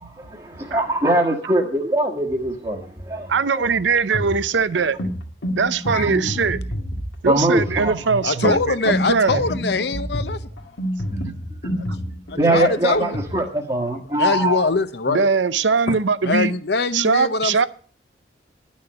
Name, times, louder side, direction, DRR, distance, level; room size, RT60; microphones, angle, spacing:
voice 1, 0.0-3.3 5.9-6.3 7.2-8.2 8.5-8.6 11.1-11.3 11.6-11.7 12.4-14.7, right 1 dB, 25° right, 1.3 m, -22 dB
voice 2, 3.3-5.0 5.6-6.6 7.2-9.4 15.1-16.5 16.9-17.7, right 5 dB, 90° right, 0.6 m, -21 dB
sound 1, 3.6-13.4, equal, 90° left, 1.8 m, -29 dB
voice 3, 8.2-10.4 12.3-13.2 14.2-15.3 15.9-16.0 16.2-17.7, left 3 dB, 65° left, 0.8 m, -22 dB
11.0 x 6.4 x 7.9 m
head